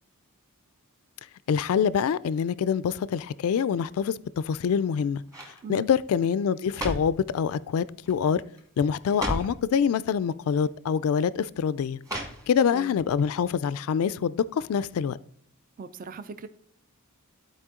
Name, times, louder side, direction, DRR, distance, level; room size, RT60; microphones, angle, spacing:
voice 1, 1.5-5.2 5.7-8.4 8.8-12.0 12.5-15.2, left 7 dB, 70° left, 0.3 m, -25 dB
sound 1, 4.4-4.9 5.3-5.6 6.4-7.2 8.0-8.3 8.6-8.7 9.0-9.6 10.6-10.7 12.0-12.8 13.2-13.3, equal, 15° right, 1.4 m, -34 dB
voice 2, 15.8-16.5, right 4 dB, 40° right, 0.4 m, -39 dB
12.5 x 4.4 x 3.7 m
head